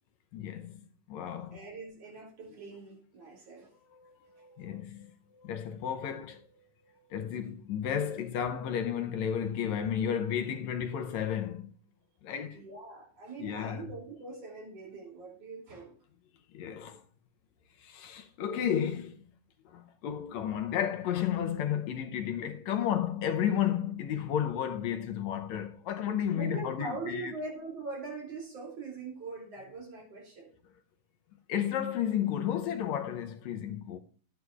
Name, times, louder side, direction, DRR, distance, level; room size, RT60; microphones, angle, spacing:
voice 1, 0.3-0.8 1.1-1.6 3.9-11.7 12.2-12.6 13.4-13.9 16.5-17.0 17.8-19.2 19.7-27.3 31.5-34.0, left 9 dB, 75° left, 1.9 m, -33 dB
voice 2, 1.5-3.7 12.5-15.9 26.3-30.5, right 3 dB, 55° right, 3.9 m, -42 dB
12.5 x 9.6 x 2.4 m
omnidirectional pair, 3.4 m